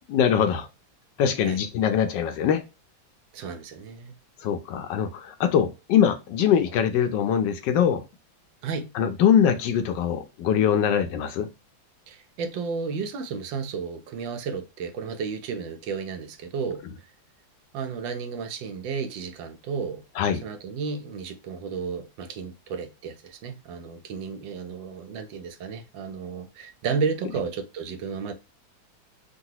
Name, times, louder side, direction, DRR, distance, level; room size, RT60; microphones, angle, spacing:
voice 1, 0.1-0.7 1.2-2.6 4.4-8.0 9.0-11.5 20.2-20.4, left 8 dB, 75° left, 1.2 m, -22 dB
voice 2, 3.3-4.1 8.6-8.9 12.1-17.1 17.7-20.0 20.4-28.3, right 5 dB, 80° right, 1.4 m, -33 dB
3.8 x 2.3 x 2.7 m
omnidirectional pair, 2.1 m